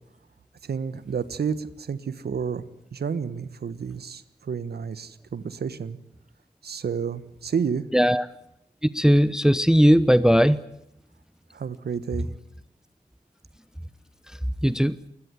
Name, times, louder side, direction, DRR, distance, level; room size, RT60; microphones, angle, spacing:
voice 1, 0.6-2.6 2.9-6.0 6.6-7.8 11.5-12.3, right 6 dB, 70° right, 15 dB, 1.3 m, -30 dB
voice 2, 7.9-8.2 8.9-10.6 14.6-15.0, equal, 5° right, 16 dB, 0.9 m, -18 dB
20.5 x 20.5 x 9.6 m, 0.80 s
supercardioid pair, 40°, 17 cm